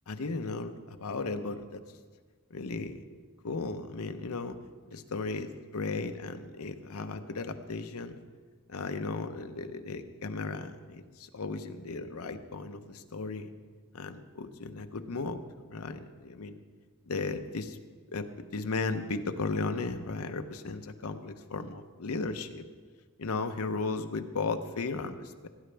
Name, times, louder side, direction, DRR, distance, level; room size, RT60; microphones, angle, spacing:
voice 1, 0.1-1.8 2.5-3.0 3.4-4.5 4.9-8.2 8.7-13.5 13.9-15.4 15.7-16.6 17.1-17.8 18.1-22.7 23.2-25.5, left 3 dB, 80° left, 8 dB, 0.7 m, -35 dB
17.5 x 10.0 x 3.4 m, 1.5 s
head